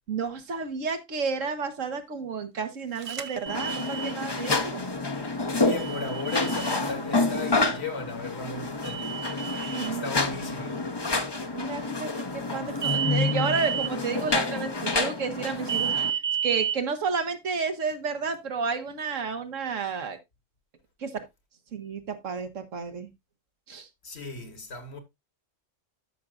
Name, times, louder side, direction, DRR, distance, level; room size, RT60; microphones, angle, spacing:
voice 1, 0.1-4.8 9.6-10.1 11.5-20.2 21.0-21.1 21.7-23.1 23.7-23.9, right 5 dB, 75° right, 1.5 m, -31 dB
sound 1, 3.0-4.1 5.7-6.8 8.8-9.9 12.8-13.9 15.7-16.8, right 9 dB, 45° right, 0.4 m, -31 dB
sound 2, 3.5-16.1, left 3 dB, 25° left, 0.7 m, -29 dB
voice 2, 5.6-9.2 9.9-10.9 24.0-25.0, left 4 dB, 55° left, 1.7 m, -36 dB
13.0 x 5.9 x 2.4 m
omnidirectional pair, 1.3 m